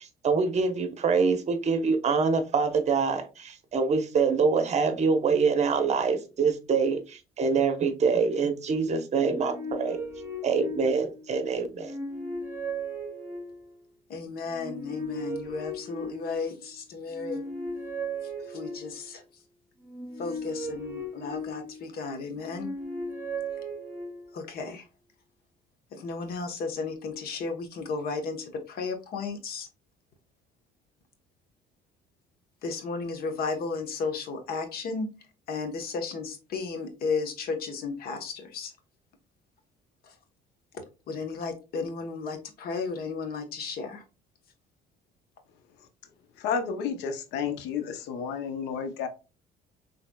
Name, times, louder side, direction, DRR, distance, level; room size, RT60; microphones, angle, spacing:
voice 1, 0.0-10.0 10.4-11.9, right 5 dB, 40° right, 7 dB, 0.9 m, -25 dB
sound 1, 9.2-11.3 11.8-13.8 14.5-16.6 17.1-19.1 19.8-22.0 22.4-24.5, right 1 dB, 15° right, 2.3 m, -37 dB
voice 2, 14.1-17.4 18.4-19.2 20.2-22.7 24.3-24.9 25.9-29.7 32.6-35.1 35.5-38.7 40.0-40.1 40.7-44.0, left 4 dB, 65° left, 5 dB, 1.2 m, -34 dB
voice 3, 46.4-49.1, left 6 dB, 90° left, 8 dB, 0.8 m, -31 dB
6.1 x 3.3 x 2.3 m, 0.31 s
cardioid pair, 110°, 17 cm